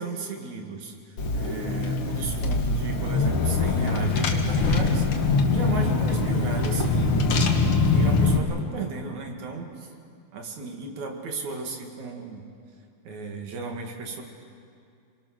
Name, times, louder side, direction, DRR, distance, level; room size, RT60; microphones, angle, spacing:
voice 1, 0.0-9.9 10.3-12.5 13.0-14.2, right 3 dB, 50° right, 2 dB, 3.4 m, -35 dB
Car / Engine, 1.2-8.4, left 3 dB, 50° left, 1.7 m, -23 dB
28.5 x 23.0 x 6.6 m, 2.4 s
omnidirectional pair, 4.5 m